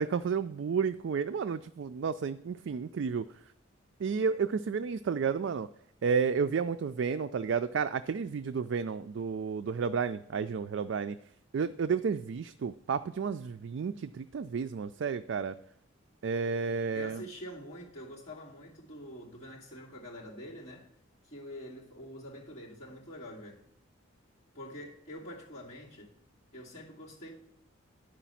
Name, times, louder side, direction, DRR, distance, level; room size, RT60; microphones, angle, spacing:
voice 1, 0.0-3.2 4.0-5.7 6.0-11.2 11.5-15.5 16.2-17.2, right 6 dB, 65° right, 0.3 m, -31 dB
voice 2, 16.9-20.9 21.2-23.6 24.5-26.1 26.5-27.3, equal, 35° left, 2.6 m, -46 dB
11.0 x 5.0 x 5.7 m
head